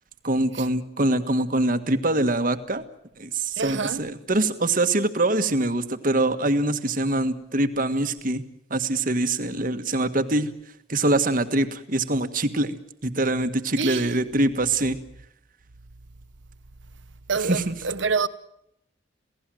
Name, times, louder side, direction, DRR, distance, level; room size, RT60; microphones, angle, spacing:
voice 1, 0.2-2.8 3.2-8.4 8.7-10.5 10.9-12.7 13.0-15.0 17.5-17.7, right 2 dB, 45° right, 1.6 m, -24 dB
voice 2, 3.6-4.0 13.8-14.1 17.3-18.3, right 5 dB, 75° right, 1.1 m, -26 dB
27.5 x 17.5 x 7.7 m
head